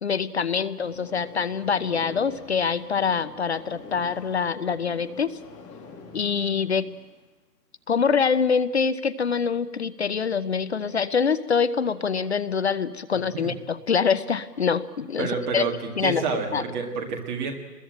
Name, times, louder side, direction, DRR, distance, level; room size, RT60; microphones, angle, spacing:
voice 1, 0.0-5.4 6.1-7.0 7.9-15.6 16.0-16.2 16.5-16.6, left 6 dB, 40° left, 16 dB, 0.9 m, -25 dB
sound 1, 0.8-7.2, left 4 dB, 15° left, 2.2 m, -46 dB
voice 2, 15.2-17.5, right 5 dB, 10° right, 2 dB, 1.9 m, -29 dB
27.0 x 21.5 x 8.9 m, 1.2 s
hypercardioid pair, 165°, 49 cm